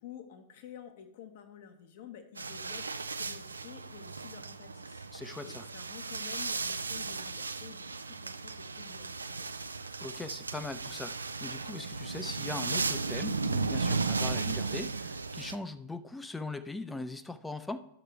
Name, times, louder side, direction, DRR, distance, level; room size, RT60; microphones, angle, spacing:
voice 1, 0.0-5.0 5.4-9.5, left 9 dB, 60° left, 6 dB, 1.2 m, -50 dB
sound 1, 2.4-15.6, right 4 dB, 90° right, 0.4 m, -35 dB
voice 2, 5.1-5.6 10.0-17.8, left 2 dB, 10° left, 11 dB, 0.6 m, -40 dB
11.0 x 6.7 x 3.3 m, 0.82 s
figure-of-eight pair, 95°, 0 cm